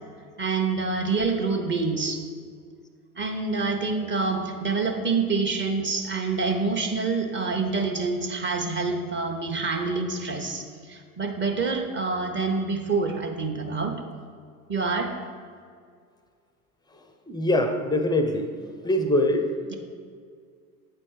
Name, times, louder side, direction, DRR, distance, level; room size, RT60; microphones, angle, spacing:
voice 1, 0.4-2.2 3.2-14.0 14.7-15.1, right 4 dB, 25° right, 3 dB, 1.0 m, -27 dB
voice 2, 17.3-18.6 18.8-19.5, left 1 dB, 10° left, 6 dB, 0.5 m, -23 dB
8.3 x 4.3 x 4.7 m, 2.1 s
hypercardioid pair, 75°, 45 cm